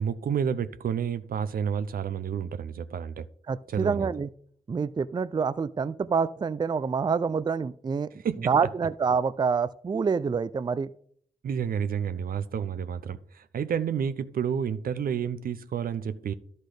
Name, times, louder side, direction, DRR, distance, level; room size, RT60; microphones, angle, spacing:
voice 1, 0.0-3.3 3.7-4.1 8.2-8.5 11.4-16.3, right 7 dB, 70° right, 13 dB, 0.6 m, -30 dB
voice 2, 3.5-4.3 4.7-8.1 8.5-10.9, right 5 dB, 30° right, 15 dB, 0.3 m, -27 dB
11.5 x 4.1 x 4.9 m, 0.62 s
supercardioid pair, 45°, 15 cm